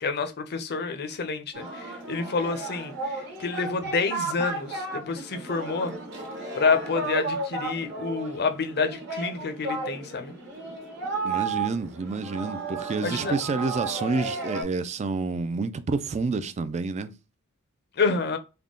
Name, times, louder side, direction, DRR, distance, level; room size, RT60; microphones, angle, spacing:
voice 1, 0.0-5.9 6.6-10.3 13.0-13.3 18.0-18.4, left 4 dB, 45° left, 0.6 m, -28 dB
Singing, 1.5-14.6, right 3 dB, 50° right, 1.2 m, -33 dB
voice 2, 11.2-17.1, right 4 dB, 30° right, 0.3 m, -29 dB
3.5 x 2.2 x 3.7 m
head